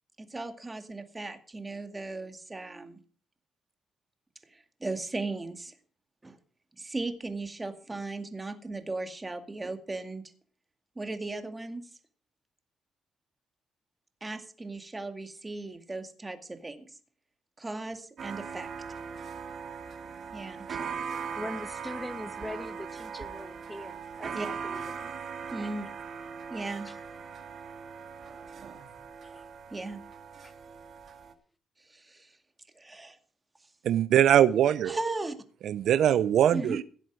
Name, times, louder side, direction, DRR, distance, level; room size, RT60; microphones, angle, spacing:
voice 1, 0.2-3.0 4.5-5.7 6.2-6.4 6.8-10.2 11.0-11.9 14.2-17.0 17.6-18.7 20.3-20.6 24.4-24.5 25.5-25.9 26.5-26.9 29.7-30.0 31.8-32.4 32.7-33.2 34.9-35.4 36.5-36.8, right 2 dB, 20° right, 2.2 m, -37 dB
sound 1, 18.2-31.3, right 6 dB, 55° right, 2.0 m, -40 dB
voice 2, 21.4-24.8 25.4-25.7 26.8-27.0 29.2-29.4 30.4-30.5, left 1 dB, 10° left, 1.3 m, -42 dB
voice 3, 33.8-35.0 35.7-36.8, right 10 dB, 70° right, 0.6 m, -22 dB
16.5 x 7.8 x 6.3 m
cardioid pair, 90°, 0 cm